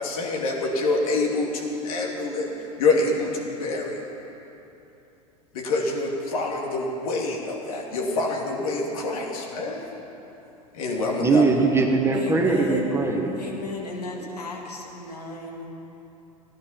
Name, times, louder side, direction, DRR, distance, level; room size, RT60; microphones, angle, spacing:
voice 1, 0.0-2.5 2.8-4.0 5.5-9.8 10.7-11.4 12.7-12.8, left 3 dB, 65° left, 0 dB, 2.5 m, -26 dB
voice 2, 11.2-13.4 14.2-14.3, right 3 dB, 15° right, 2 dB, 1.5 m, -21 dB
voice 3, 12.1-13.0 13.4-15.6, left 3 dB, 85° left, -1 dB, 2.2 m, -34 dB
15.5 x 11.0 x 5.8 m, 3.0 s
figure-of-eight pair, 90°, 20 cm